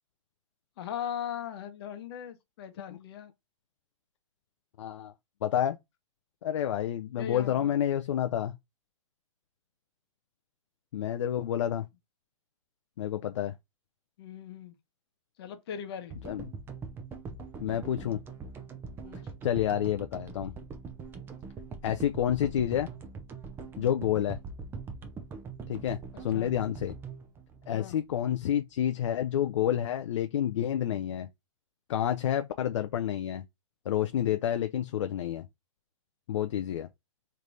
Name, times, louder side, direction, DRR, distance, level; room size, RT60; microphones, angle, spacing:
voice 1, 0.8-3.3 7.2-7.7 14.2-14.7 15.4-16.1 19.0-19.2 26.3-26.5 27.7-28.0, left 9 dB, 50° left, 0.8 m, -39 dB
voice 2, 4.8-5.1 5.4-5.8 6.4-8.6 10.9-11.9 13.0-13.5 16.2-16.4 17.6-18.2 19.4-20.5 21.8-22.9 23.8-24.4 25.7-26.9 27.7-31.3 31.9-33.4 33.9-35.5 36.3-36.9, left 10 dB, 65° left, 0.4 m, -29 dB
sound 1, 16.1-28.4, right 4 dB, 15° right, 0.6 m, -43 dB
3.3 x 3.2 x 2.6 m
hypercardioid pair, 135°, 17 cm